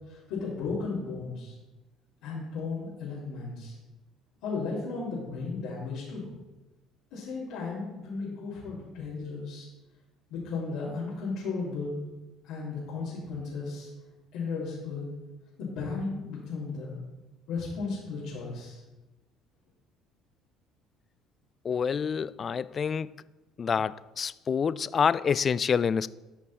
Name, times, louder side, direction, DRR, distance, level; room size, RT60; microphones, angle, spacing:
voice 1, 0.1-1.5 2.2-3.7 4.4-6.3 7.1-9.7 10.3-12.0 12.5-13.9 14.3-15.1 15.6-17.0 17.5-18.8, left 4 dB, 75° left, 3.2 m, -35 dB
voice 2, 21.6-23.1 23.6-26.1, left 6 dB, 40° left, 0.3 m, -27 dB
13.5 x 5.3 x 4.3 m
hypercardioid pair, 65°, 0 cm